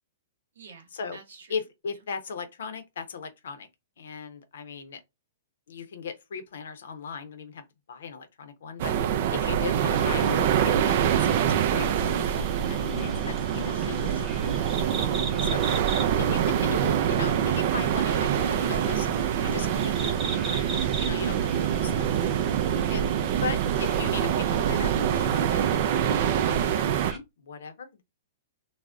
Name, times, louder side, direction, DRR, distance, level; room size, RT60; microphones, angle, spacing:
voice 1, 0.5-1.5 9.4-9.8 14.1-14.7 15.1-15.7, right 5 dB, 75° right, 0.9 m, -50 dB
voice 2, 1.5-3.7 4.0-5.0 5.7-8.9 9.3-14.3 15.4-15.6 16.2-22.1 22.9-23.1 23.4-28.0, left 5 dB, 75° left, 0.6 m, -38 dB
sound 1, 8.8-27.1, right 9 dB, 55° right, 0.3 m, -25 dB
sound 2, 9.9-27.2, right 3 dB, 15° right, 0.7 m, -40 dB
2.4 x 2.0 x 3.4 m
hypercardioid pair, 130°, 0 cm